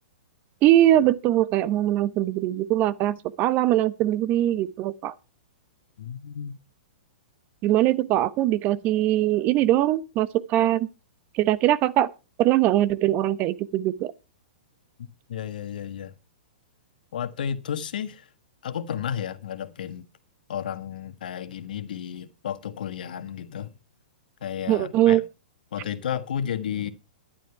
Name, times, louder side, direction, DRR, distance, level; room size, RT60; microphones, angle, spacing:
voice 1, 0.6-5.1 7.6-10.9 11.3-12.1 12.4-14.1 24.7-25.2, right 13 dB, 35° right, 0.8 m, -21 dB
voice 2, 6.0-6.6 15.3-16.1 17.1-18.3 18.6-20.0 20.5-23.7 24.4-25.2 25.7-26.9, left 9 dB, 65° left, 1.5 m, -32 dB
12.5 x 11.0 x 4.7 m
figure-of-eight pair, 115°, 5 cm